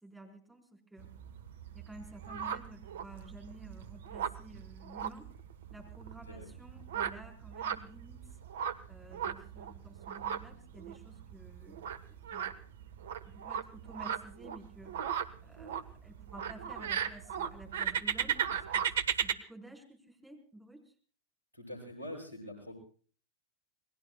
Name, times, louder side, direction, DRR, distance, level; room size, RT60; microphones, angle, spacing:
voice 1, 0.0-1.1 1.7-5.3 5.7-8.4 8.9-11.8 12.1-12.5 13.3-15.0 15.4-18.9 19.2-20.9, right 1 dB, 5° right, 1 dB, 4.2 m, -52 dB
sound 1, 1.0-19.3, right 8 dB, 60° right, 1.1 m, -37 dB
voice 2, 21.5-22.7, left 1 dB, 85° right, 3 dB, 7.3 m, -44 dB
28.5 x 21.0 x 2.2 m, 0.42 s
figure-of-eight pair, 90°, 0 cm